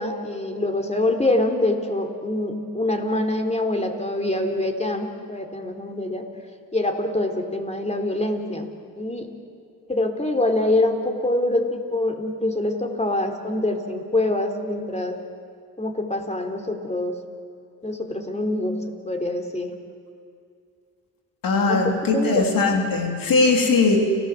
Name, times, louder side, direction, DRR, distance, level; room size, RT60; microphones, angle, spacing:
voice 1, 0.0-6.2 6.7-8.7 9.0-9.3 9.9-15.2 15.8-17.2 17.8-18.8 19.0-19.7 21.7-22.5, left 1 dB, 20° left, 4 dB, 3.7 m, -25 dB
voice 2, 21.4-24.0, left 3 dB, 65° left, 2 dB, 3.7 m, -20 dB
30.0 x 15.0 x 7.6 m, 2.3 s
supercardioid pair, 55°, 36 cm